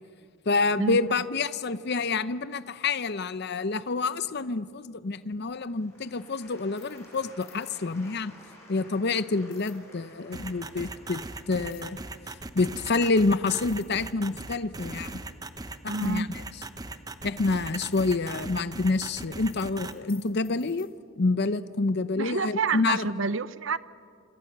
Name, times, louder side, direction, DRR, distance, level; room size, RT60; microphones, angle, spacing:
voice 1, 0.5-8.3 8.7-12.0 12.5-15.1 15.8-16.6 17.2-20.9 21.2-23.1, left 3 dB, 50° left, 14 dB, 0.7 m, -28 dB
Applause / Crowd, 5.3-14.2 14.8-14.9, left 1 dB, 15° left, 7.9 m, -54 dB
sound 1, 6.8-8.0 9.5-9.8 11.6-12.1 13.0-13.1 13.4-14.5 16.0-16.2 17.1-20.9, left 15 dB, 75° left, 3.2 m, -55 dB
sound 2, 10.3-19.9, right 2 dB, 20° right, 0.9 m, -38 dB
voice 2, 15.9-16.3 22.2-23.8, right 4 dB, 65° right, 16 dB, 0.7 m, -28 dB
28.0 x 26.5 x 6.7 m, 2.4 s
head